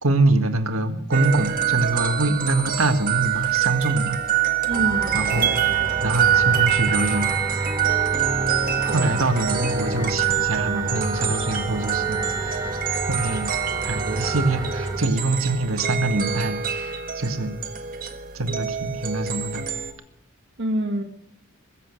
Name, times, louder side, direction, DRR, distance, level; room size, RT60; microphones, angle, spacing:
voice 1, 0.0-4.2 5.1-5.5 6.0-7.4 8.8-12.8 13.1-13.5 13.8-17.6 18.3-19.6, right 2 dB, 75° right, 7 dB, 1.8 m, -24 dB
sound 1, 1.1-19.9, right 9 dB, 40° right, 1.5 m, -25 dB
sound 2, 4.7-15.0, right 2 dB, 15° right, 1.6 m, -30 dB
voice 2, 4.7-5.9 8.9-9.2 20.6-21.0, right 1 dB, 60° right, -1 dB, 1.5 m, -28 dB
21.5 x 7.8 x 6.2 m, 0.75 s
head